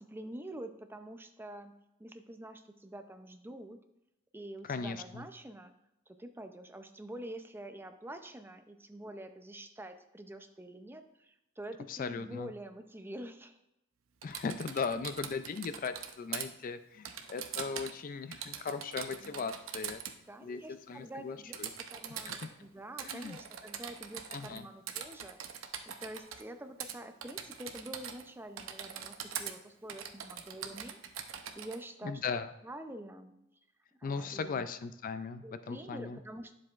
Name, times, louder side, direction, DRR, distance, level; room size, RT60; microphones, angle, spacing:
voice 1, 0.0-1.7 2.0-3.8 4.3-5.7 6.1-13.6 19.2-19.4 20.3-32.2 32.6-33.3 34.0-34.7 35.4-36.5, right 1 dB, 10° right, 7 dB, 0.5 m, -47 dB
voice 2, 4.7-5.2 11.9-12.5 14.2-20.0 20.4-21.7 22.1-22.5 23.0-23.4 24.3-24.7 32.0-32.5 34.0-36.2, left 5 dB, 45° left, 11 dB, 0.4 m, -38 dB
Typing, 14.2-16.5 17.1-18.0 18.3-20.2 21.5-22.5 23.0-24.6 24.9-26.4 26.8-27.0 27.2-28.3 28.6-29.5 29.9-31.8, right 8 dB, 80° right, 0.7 m, -42 dB
10.5 x 7.5 x 2.4 m, 0.87 s
head